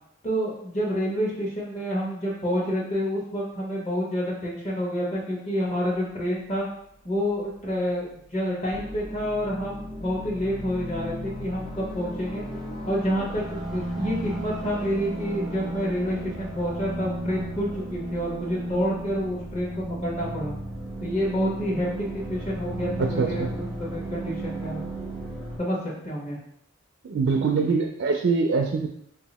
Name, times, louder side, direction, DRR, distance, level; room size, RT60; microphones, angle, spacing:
voice 1, 0.2-6.7 7.0-12.4 12.8-20.5 21.0-24.8 25.6-25.8 26.0-26.4, equal, 35° left, -4 dB, 1.0 m, -28 dB
sound 1, 8.7-25.6, right 1 dB, ahead, 0.7 m, -34 dB
voice 2, 23.0-23.5 27.0-28.9, right 4 dB, 60° right, 2 dB, 0.4 m, -24 dB
2.7 x 2.5 x 4.1 m, 0.72 s
head